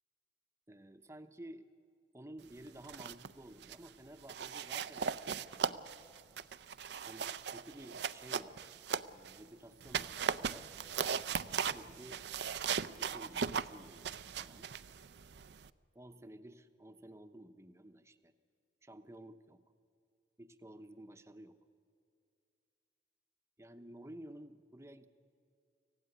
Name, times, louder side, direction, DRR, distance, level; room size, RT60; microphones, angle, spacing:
voice 1, 0.7-1.7 2.1-5.8 7.0-8.6 9.1-10.7 11.4-12.2 13.0-14.1 14.4-14.7 15.9-18.3 18.8-19.6 20.4-21.6 23.6-25.1, right 1 dB, 15° right, 9 dB, 0.8 m, -53 dB
sound 1, 2.7-3.3 3.6-3.9 4.3-9.4 9.8-15.7, right 6 dB, 70° right, 0.5 m, -38 dB
25.0 x 16.0 x 9.8 m, 2.4 s
head